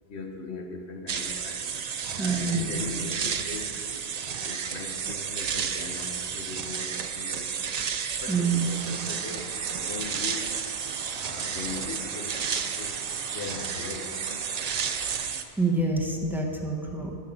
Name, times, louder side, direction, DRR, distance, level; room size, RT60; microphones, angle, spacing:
voice 1, 0.1-1.6 2.2-3.8 4.4-7.7 8.2-10.6 11.2-13.0 13.3-14.1, left 4 dB, 70° left, 3 dB, 1.3 m, -39 dB
sound 1, 1.1-15.4, right 7 dB, 50° right, 0.5 m, -32 dB
voice 2, 2.2-2.7 8.3-8.7 15.6-17.1, right 3 dB, ahead, -1 dB, 1.0 m, -26 dB
sound 2, 8.2-15.2, right 1 dB, 30° right, 2.3 m, -46 dB
12.5 x 6.6 x 5.3 m, 2.8 s
omnidirectional pair, 1.2 m